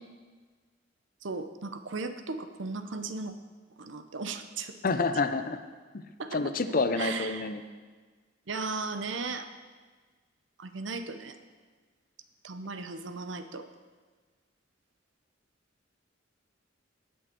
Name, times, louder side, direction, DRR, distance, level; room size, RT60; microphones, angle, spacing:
voice 1, 1.2-3.3 3.8-4.8 6.2-6.4 7.0-7.5 8.5-9.5 10.6-11.4 12.4-13.7, right 4 dB, 70° right, 9 dB, 0.8 m, -36 dB
voice 2, 4.8-5.6 5.9-6.0 6.3-7.6, left 3 dB, 50° left, 10 dB, 0.6 m, -28 dB
18.5 x 6.6 x 4.5 m, 1.4 s
head